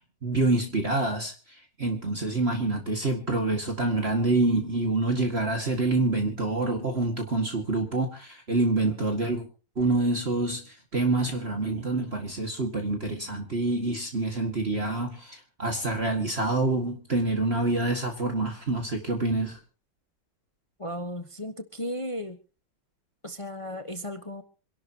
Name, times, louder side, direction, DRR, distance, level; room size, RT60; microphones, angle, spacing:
voice 1, 0.2-9.4 9.8-19.6, right 2 dB, 35° right, 3 dB, 2.2 m, -27 dB
voice 2, 20.8-22.4 23.2-24.4, equal, 20° left, 8 dB, 1.0 m, -35 dB
26.5 x 12.0 x 2.9 m, 0.35 s
omnidirectional pair, 1.9 m